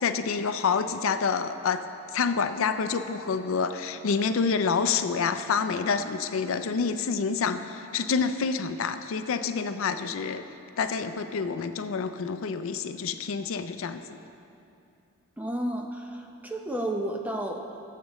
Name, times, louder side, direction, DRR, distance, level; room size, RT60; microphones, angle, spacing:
voice 1, 0.0-1.8 2.1-10.4 10.8-14.2, left 5 dB, 65° left, 10 dB, 0.4 m, -28 dB
voice 2, 15.4-17.8, right 1 dB, 5° right, 2 dB, 0.6 m, -32 dB
19.0 x 7.5 x 3.0 m, 2.7 s
head